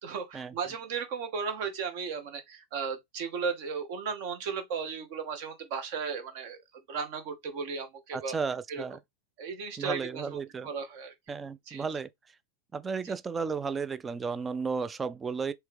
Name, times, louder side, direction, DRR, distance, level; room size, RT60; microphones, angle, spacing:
voice 1, 0.0-6.6 6.9-8.3 8.7-8.8 9.4-11.1 11.7-11.8 13.0-13.1, right 5 dB, 45° right, 1.2 m, -35 dB
voice 2, 8.1-9.0 9.8-10.7 11.3-12.1 12.7-15.5, right 5 dB, 15° right, 0.4 m, -33 dB
4.4 x 3.0 x 3.3 m
figure-of-eight pair, 90°, 0 cm